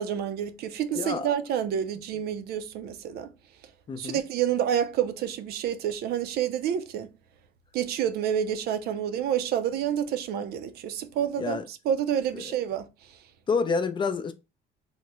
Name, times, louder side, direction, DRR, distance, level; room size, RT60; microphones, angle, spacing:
voice 1, 0.0-3.3 4.0-7.1 7.7-12.9, right 9 dB, 70° right, 0.4 m, -28 dB
voice 2, 0.9-1.3 3.9-4.2 11.4-11.7 12.3-12.5 13.5-14.3, left 5 dB, 30° left, 0.4 m, -28 dB
2.9 x 2.0 x 3.4 m
cardioid pair, 110°, 17 cm